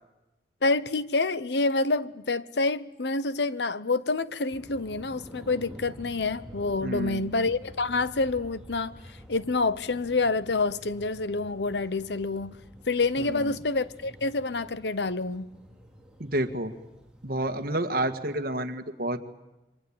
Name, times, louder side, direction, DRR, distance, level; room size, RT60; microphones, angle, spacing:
voice 1, 0.6-8.9 9.3-12.6 12.9-15.5, left 3 dB, 75° left, 0.9 m, -27 dB
sound 1, 4.5-17.7, equal, 5° right, 2.5 m, -48 dB
voice 2, 6.8-7.3 13.3-13.5 16.2-16.7 17.2-19.2, right 1 dB, 55° right, 1.8 m, -29 dB
27.5 x 24.5 x 8.8 m
head